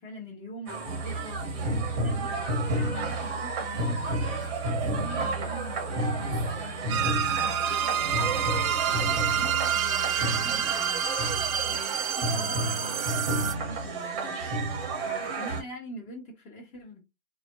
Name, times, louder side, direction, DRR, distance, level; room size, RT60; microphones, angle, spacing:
voice 1, 0.0-8.1 8.5-11.1 11.7-14.5 15.0-17.1, equal, 20° left, 1.0 m, -44 dB
sound 1, 0.7-15.6, right 2 dB, 30° right, 0.8 m, -30 dB
sound 2, 6.9-13.5, right 9 dB, 85° right, 0.5 m, -28 dB
sound 3, 7.9-12.3, left 2 dB, 40° left, 1.4 m, -50 dB
2.6 x 2.1 x 2.2 m
figure-of-eight pair, 115°, 41 cm